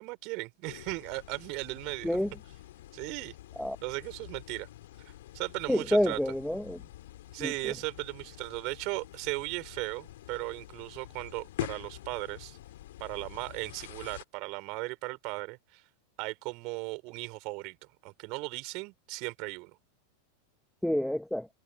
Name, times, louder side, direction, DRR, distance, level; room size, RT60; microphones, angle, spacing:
voice 1, 0.0-2.2 2.9-3.3 3.8-4.7 5.0-6.2 7.3-12.6 13.0-15.8 16.2-17.8 18.0-19.7, right 27 dB, 45° right, 5.4 m, -37 dB
sound 1, 0.7-14.2, left 14 dB, 55° left, 3.1 m, -46 dB
voice 2, 5.7-6.8 7.4-7.7 20.8-21.5, left 1 dB, ahead, 1.5 m, -28 dB
figure-of-eight pair, 90°, 0 cm